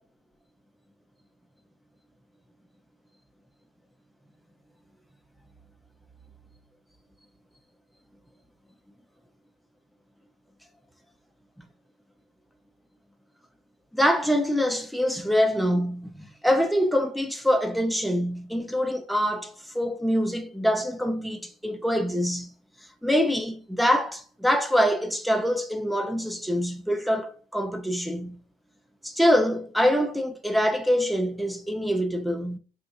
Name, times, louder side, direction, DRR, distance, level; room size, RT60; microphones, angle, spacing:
voice 1, 13.9-22.5 23.0-28.4 29.0-32.6, equal, ahead, 0.5 m, -25 dB
4.4 x 3.5 x 2.6 m
cardioid pair, 110°, 17 cm